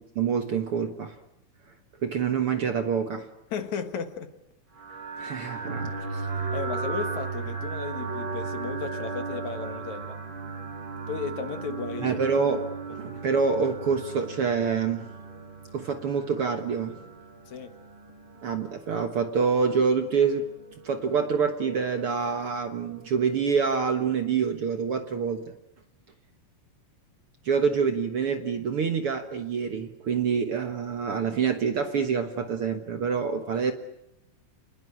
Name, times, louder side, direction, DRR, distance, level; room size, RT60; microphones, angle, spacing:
voice 1, 0.2-1.2 2.0-3.3 5.2-5.9 12.0-15.1 15.7-17.0 18.4-20.5 20.8-25.5 27.4-33.7, right 6 dB, 55° right, 1.8 m, -26 dB
voice 2, 3.5-4.3 6.0-10.2 11.1-12.2 17.5-17.7, left 6 dB, 65° left, 2.8 m, -35 dB
sound 1, 4.7-24.4, right 4 dB, 35° right, 5.0 m, -37 dB
28.0 x 20.5 x 10.0 m
omnidirectional pair, 3.8 m